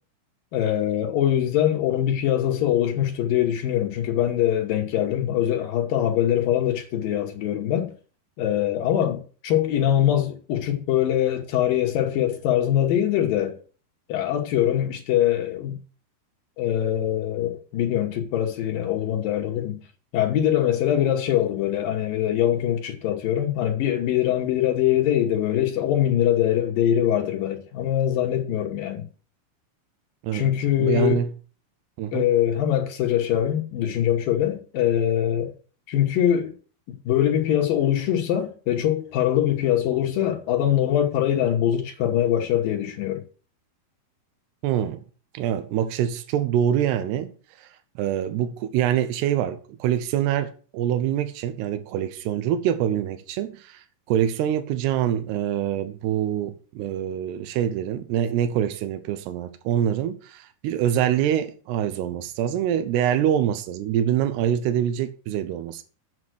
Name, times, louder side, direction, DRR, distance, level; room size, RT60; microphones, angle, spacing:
voice 1, 0.5-7.9 8.4-13.6 14.1-15.8 16.6-19.8 20.1-29.0 30.3-31.2 32.1-35.5 35.9-36.5 37.1-43.2, left 11 dB, 70° left, 2.7 m, -23 dB
voice 2, 30.2-31.3 32.0-32.3 44.6-45.0 45.3-47.3 47.6-47.7 48.0-65.8, right 10 dB, 90° right, 2.9 m, -25 dB
7.9 x 7.3 x 6.2 m
omnidirectional pair, 4.6 m